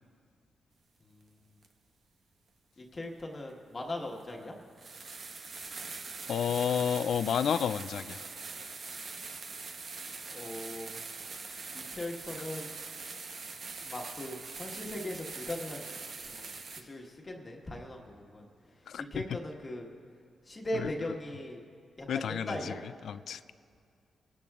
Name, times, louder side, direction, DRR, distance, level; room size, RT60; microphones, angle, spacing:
voice 1, 1.0-1.5 2.8-4.6 10.2-11.3 11.7-12.7 13.8-16.0 16.2-16.5 16.8-19.9 20.4-21.6 22.0-22.8, left 1 dB, 30° left, 0 dB, 1.4 m, -40 dB
sound 1, 1.6-1.7 3.5-3.6 4.2-4.3 4.8-16.8, right 4 dB, 55° right, 0.9 m, -43 dB
voice 2, 6.3-8.2 18.9-19.2 20.7-20.9 22.1-22.7 23.0-23.4, left 8 dB, 75° left, 14 dB, 0.3 m, -31 dB
22.5 x 12.0 x 2.4 m, 2.2 s
cardioid pair, 70°, 0 cm